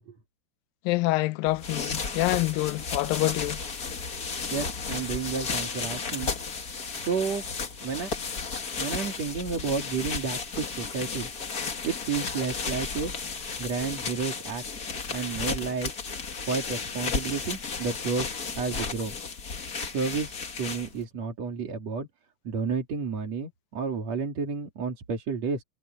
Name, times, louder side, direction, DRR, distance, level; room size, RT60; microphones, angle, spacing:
voice 1, 0.9-3.6, left 19 dB, 80° left, 2.0 m, -26 dB
sound 1, 1.5-21.0, left 5 dB, 50° left, 1.1 m, -34 dB
voice 2, 4.5-6.3 7.0-7.5 7.8-8.1 8.8-11.3 11.8-13.1 13.6-14.6 15.1-15.9 16.5-19.2 19.8-22.1 22.5-25.6, right 5 dB, 45° right, 3.7 m, -31 dB
omnidirectional pair, 4.5 m